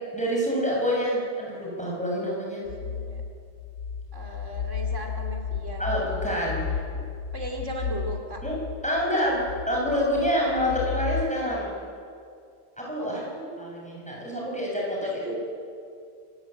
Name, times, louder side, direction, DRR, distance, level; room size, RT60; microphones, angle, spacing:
voice 1, 0.1-2.6 5.8-6.8 8.4-8.5 8.8-11.7 12.8-13.2 13.6-15.4, equal, 5° left, -3 dB, 7.6 m, -27 dB
voice 2, 2.4-3.2 4.1-5.9 7.3-8.4 13.0-13.8 15.0-15.3, right 2 dB, 80° right, 2 dB, 3.2 m, -38 dB
sound 1, 2.7-11.4, left 6 dB, 90° left, 1.1 m, -33 dB
26.5 x 16.0 x 9.1 m, 2.3 s
omnidirectional pair, 1.3 m